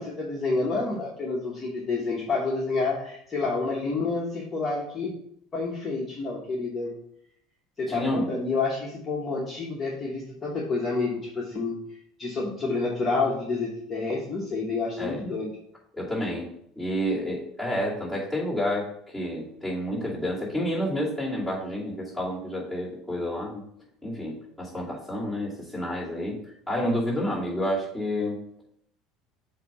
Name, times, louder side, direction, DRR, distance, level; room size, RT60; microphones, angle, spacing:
voice 1, 0.0-5.1 5.5-6.9 7.8-11.8 12.2-15.5, left 3 dB, 20° left, -4 dB, 1.0 m, -29 dB
voice 2, 7.9-8.3 15.0-15.2 15.9-16.5 16.8-23.6 24.0-26.4 26.7-28.4, equal, 5° right, -7 dB, 2.7 m, -29 dB
7.8 x 2.7 x 5.4 m, 0.71 s
cardioid pair, 150°, 0 cm